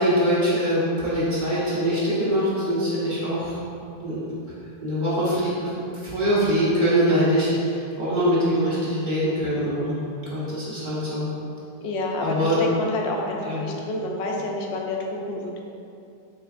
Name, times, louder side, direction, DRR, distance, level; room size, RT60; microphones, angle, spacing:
voice 1, 0.0-3.6 4.0-4.2 4.8-5.8 6.0-10.0 10.3-11.3 12.2-12.6 13.4-13.6, equal, 50° right, -9 dB, 1.4 m, -23 dB
voice 2, 11.8-15.6, left 2 dB, 90° left, 0 dB, 0.9 m, -28 dB
4.4 x 4.0 x 2.5 m, 2.6 s
omnidirectional pair, 1.1 m